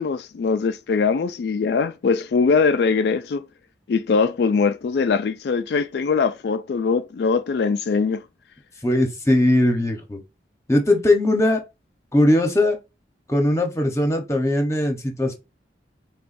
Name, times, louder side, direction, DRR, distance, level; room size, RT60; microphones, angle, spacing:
voice 1, 0.0-3.5 3.9-8.2, left 5 dB, 65° left, 0.3 m, -21 dB
voice 2, 8.8-10.2 10.7-11.6 12.1-12.8 13.3-15.3, left 1 dB, 15° left, 0.9 m, -19 dB
6.7 x 2.3 x 2.6 m
head